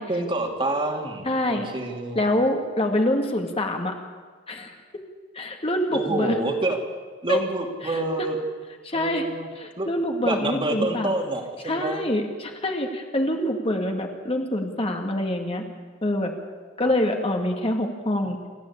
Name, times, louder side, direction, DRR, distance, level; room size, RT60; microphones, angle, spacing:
voice 1, 0.1-2.2 5.9-6.8 7.2-8.4 8.9-9.5 9.8-9.9 10.2-12.0 16.8-16.9, right 2 dB, 25° right, 2 dB, 2.7 m, -27 dB
voice 2, 1.2-1.7 2.2-3.9 4.5-4.7 5.3-6.4 7.3-7.4 7.8-8.0 8.8-9.3 9.6-11.1 11.6-15.6 16.0-16.3 16.8-18.4, left 1 dB, 30° left, 3 dB, 2.1 m, -25 dB
28.0 x 14.0 x 8.6 m, 1.5 s
head